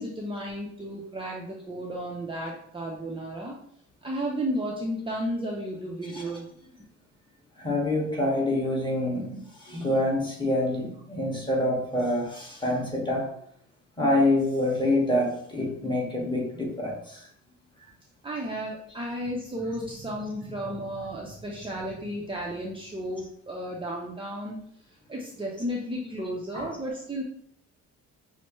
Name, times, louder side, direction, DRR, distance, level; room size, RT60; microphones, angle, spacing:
voice 1, 0.0-3.5 4.0-6.5 18.2-24.6 25.1-27.2, equal, 15° right, -3 dB, 0.7 m, -33 dB
voice 2, 7.6-13.3 14.0-17.3 26.5-26.7, left 1 dB, 15° left, -2 dB, 1.5 m, -26 dB
5.9 x 2.1 x 3.1 m, 0.67 s
cardioid pair, 90°, 30 cm